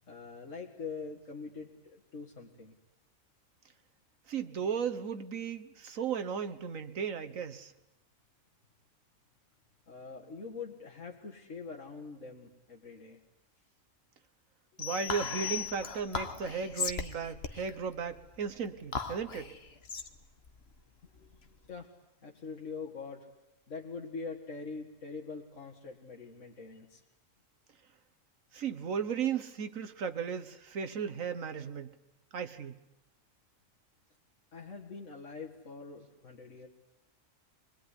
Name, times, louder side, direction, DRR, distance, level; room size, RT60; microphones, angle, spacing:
voice 1, 0.1-2.8 9.9-13.2 21.0-21.9 22.2-23.3 23.7-27.0 34.5-36.7, left 4 dB, 70° left, 2.3 m, -44 dB
voice 2, 4.3-7.7 14.8-19.5 28.5-31.9 32.3-32.7, right 6 dB, 85° right, 1.7 m, -35 dB
sound 1, 14.8-16.3, left 9 dB, 85° left, 2.0 m, -39 dB
Whispering, 15.1-21.7, left 5 dB, 50° left, 1.5 m, -39 dB
25.0 x 21.5 x 9.9 m
omnidirectional pair, 1.4 m